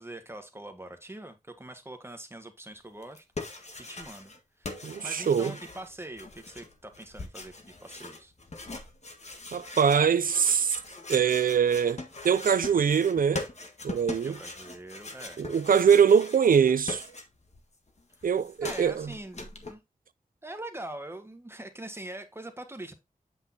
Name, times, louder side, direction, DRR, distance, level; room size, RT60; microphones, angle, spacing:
voice 1, 0.0-3.2 3.5-8.3 14.2-15.5 18.6-19.8 20.4-22.9, right 1 dB, 15° right, 1.5 m, -43 dB
sound 1, 3.0-4.4 4.6-17.6 17.9-19.7, left 2 dB, 50° left, 1.6 m, -41 dB
voice 2, 4.8-5.5 9.5-10.8 11.1-13.5 13.8-14.4 15.4-17.0 18.2-19.1, right 7 dB, 75° right, 0.4 m, -23 dB
8.0 x 6.2 x 2.8 m
wide cardioid pair, 90°, 14 cm